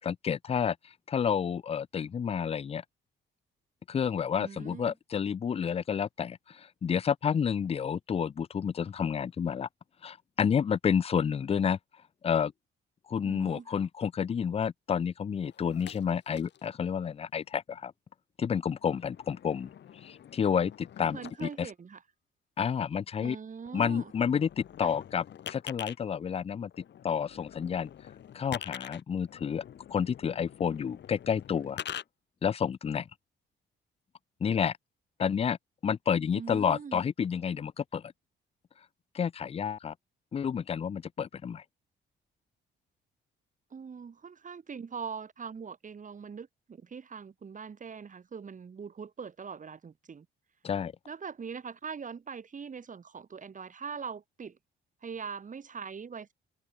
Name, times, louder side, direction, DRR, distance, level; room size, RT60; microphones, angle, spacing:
voice 1, 0.0-2.8 3.9-9.7 10.0-11.8 12.2-12.5 13.1-17.9 18.4-19.7 20.0-21.7 22.6-23.4 23.7-26.7 27.0-27.9 28.3-29.6 29.9-31.8 32.4-33.1 34.4-34.8 35.2-35.6 35.8-38.1 39.1-39.9 40.3-41.6 50.6-50.9, left 7 dB, 30° left, 0.5 m, -30 dB
voice 2, 4.4-4.9 13.2-13.8 21.1-22.0 23.2-24.1 24.8-25.0 36.3-37.0 43.7-50.3 51.1-54.6 55.0-56.3, right 6 dB, 40° right, 3.7 m, -42 dB
sound 1, 15.4-16.7 17.3-17.5 18.4-21.6 23.3-23.4 23.6-26.0 26.7-32.0, left 10 dB, 60° left, 2.0 m, -45 dB
cardioid pair, 90°, 20 cm